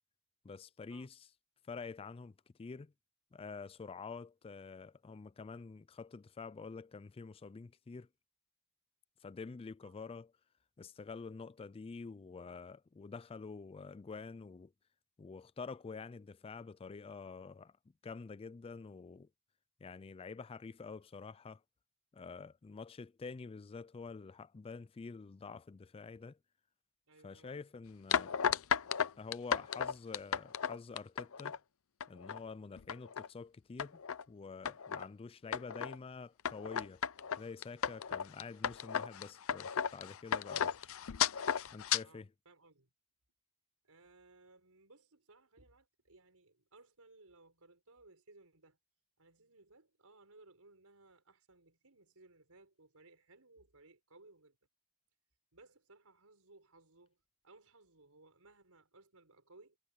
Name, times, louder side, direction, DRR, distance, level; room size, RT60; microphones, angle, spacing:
voice 1, 0.4-1.2 1.7-2.9 3.3-8.1 9.2-10.3 10.8-14.7 15.2-17.7 18.0-19.3 19.8-21.6 22.1-26.4 27.2-28.3 29.2-31.6 32.1-34.0 34.3-37.0 37.4-40.9 41.7-42.3, left 4 dB, 25° left, 0.3 m, -47 dB
voice 2, 27.1-27.7 38.1-38.3 42.0-42.9 43.8-48.8 49.2-54.6 55.5-59.8, right 2 dB, 75° right, 5.2 m, -62 dB
sound 1, 28.1-31.6 32.0-32.4 32.8-33.3 33.8-34.2 34.7-35.0 35.5-36.0 36.5-42.0, left 8 dB, 65° left, 0.6 m, -34 dB
head